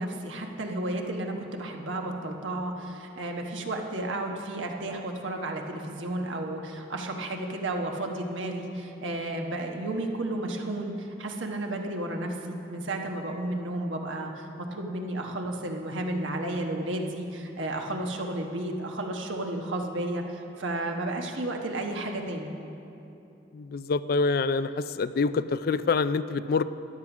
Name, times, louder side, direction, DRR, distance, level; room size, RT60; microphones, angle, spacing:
voice 1, 0.0-22.5, right 1 dB, 85° right, 2 dB, 1.3 m, -32 dB
voice 2, 23.5-26.6, left 4 dB, 50° left, 14 dB, 0.3 m, -26 dB
13.5 x 10.5 x 6.0 m, 2.9 s
head